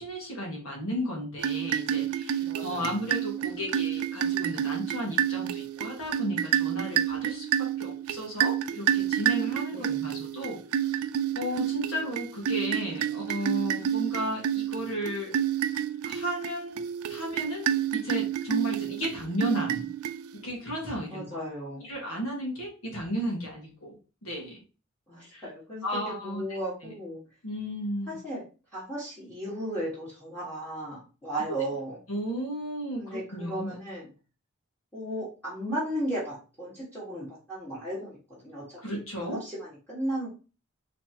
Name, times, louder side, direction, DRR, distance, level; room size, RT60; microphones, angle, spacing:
voice 1, 0.0-10.6 11.3-15.4 16.0-16.8 17.1-19.9 20.3-21.2 21.8-24.6 25.2-25.4 25.8-26.4 26.8-26.9 27.4-28.2 32.1-33.7 38.8-39.4, equal, 65° left, -1 dB, 1.7 m, -34 dB
sound 1, 1.4-20.6, right 10 dB, 75° right, 0.4 m, -29 dB
voice 2, 2.4-2.9 9.7-10.2 21.1-21.9 25.1-27.2 28.1-28.4 28.7-32.0 33.0-34.1 34.9-40.3, right 1 dB, 5° left, -10 dB, 1.6 m, -35 dB
4.0 x 3.3 x 2.9 m, 0.34 s
head